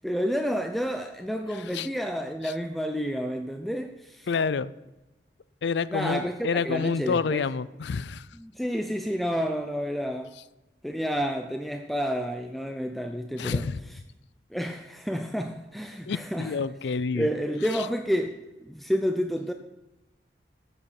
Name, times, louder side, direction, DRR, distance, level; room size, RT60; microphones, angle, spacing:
voice 1, 0.0-4.3 5.9-7.5 8.3-10.3 10.8-13.7 14.5-16.7 17.1-19.5, equal, ahead, 4 dB, 0.5 m, -30 dB
voice 2, 4.3-4.7 5.6-8.2 13.4-13.8 16.1-17.3, left 5 dB, 75° left, 17 dB, 0.4 m, -28 dB
13.0 x 8.8 x 4.3 m, 1.0 s
head